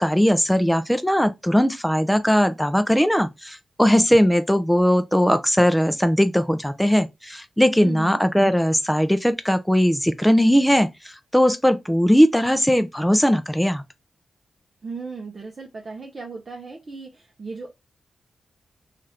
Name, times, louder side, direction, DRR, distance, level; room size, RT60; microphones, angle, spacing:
voice 1, 0.0-13.8, equal, 5° left, 0.4 m, -19 dB
voice 2, 7.8-8.2 14.8-17.7, right 4 dB, 45° right, 0.6 m, -36 dB
2.8 x 2.4 x 3.2 m
wide cardioid pair, 110°, 0 cm